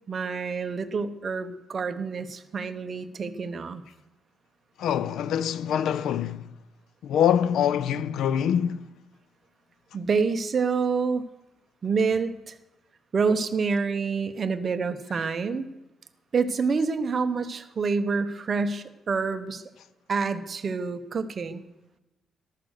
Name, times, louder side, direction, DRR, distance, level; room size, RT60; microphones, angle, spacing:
voice 1, 0.1-3.8 9.9-11.2 11.8-12.5 13.1-15.7 16.3-19.6 20.1-21.6, right 5 dB, 35° right, 0.9 m, -27 dB
voice 2, 4.8-6.5 7.0-8.9, left 9 dB, 90° left, 0.5 m, -24 dB
14.5 x 11.5 x 6.5 m
cardioid pair, 160°, 0 cm